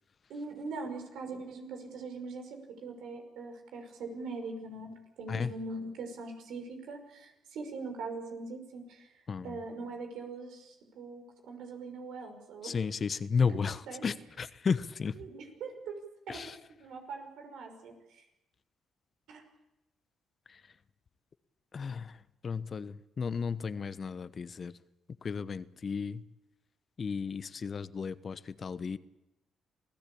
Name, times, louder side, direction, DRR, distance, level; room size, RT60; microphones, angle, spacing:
voice 1, 0.3-12.8 13.5-14.1 15.1-15.9 16.3-16.4 16.8-18.2 19.3-19.5, right 3 dB, 80° right, 4 dB, 5.6 m, -42 dB
voice 2, 9.3-9.6 12.6-15.1 16.3-16.5 21.7-22.1 22.4-24.7 25.2-26.2 27.0-29.0, left 5 dB, 45° left, 14 dB, 1.0 m, -33 dB
27.5 x 16.5 x 8.6 m, 0.91 s
cardioid pair, 90°, 0 cm